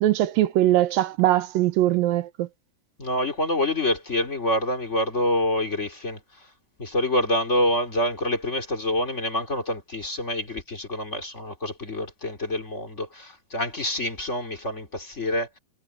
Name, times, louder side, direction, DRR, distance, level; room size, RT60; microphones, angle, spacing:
voice 1, 0.0-2.5, right 14 dB, 85° right, 2.7 m, -21 dB
voice 2, 3.0-6.2 6.8-15.5, left 1 dB, 20° left, 2.5 m, -26 dB
omnidirectional pair, 4.0 m